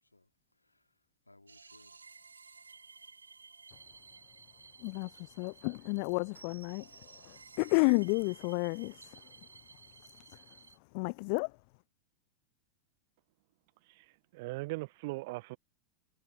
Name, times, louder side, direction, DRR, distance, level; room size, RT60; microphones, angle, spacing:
voice 1, 0.0-2.1 3.1-3.5, left 2 dB, 85° left, 2.9 m, -66 dB
sound 1, 1.5-10.8, right 5 dB, 75° right, 2.5 m, -55 dB
voice 2, 4.8-9.2 10.3-10.4 10.9-11.5, left 36 dB, 45° left, 0.4 m, -32 dB
voice 3, 13.9-15.6, right 23 dB, 50° right, 1.3 m, -40 dB
figure-of-eight pair, 90°, 0 cm